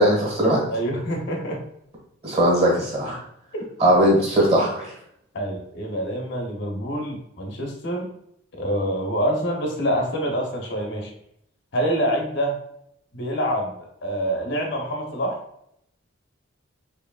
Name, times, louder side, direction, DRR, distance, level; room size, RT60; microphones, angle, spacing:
voice 1, 0.0-0.6 2.2-3.2 3.8-4.9, right 1 dB, 30° right, -4 dB, 1.4 m, -19 dB
voice 2, 0.7-1.7 3.5-3.6 5.3-8.1 8.5-11.1 11.7-12.6 13.1-13.7 14.0-15.4, equal, 60° left, 1 dB, 0.8 m, -26 dB
4.5 x 3.0 x 2.3 m, 0.74 s
head